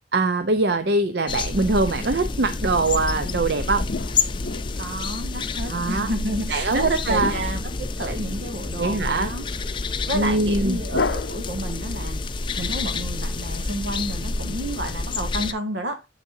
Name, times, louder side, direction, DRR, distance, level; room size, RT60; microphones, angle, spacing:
voice 1, 0.1-3.8 5.7-6.1 6.5-7.3 8.1-8.2 8.8-9.3 10.1-10.8, right 3 dB, 65° right, 0.6 m, -22 dB
sound 1, 1.3-15.5, left 3 dB, 25° left, 0.5 m, -29 dB
sound 2, 3.2-5.3 7.2-8.5 10.9-11.9, left 4 dB, 75° left, 0.6 m, -32 dB
voice 2, 4.8-9.4 10.1-12.2 12.6-16.1, right 1 dB, 85° right, 1.8 m, -30 dB
8.1 x 6.6 x 2.7 m
head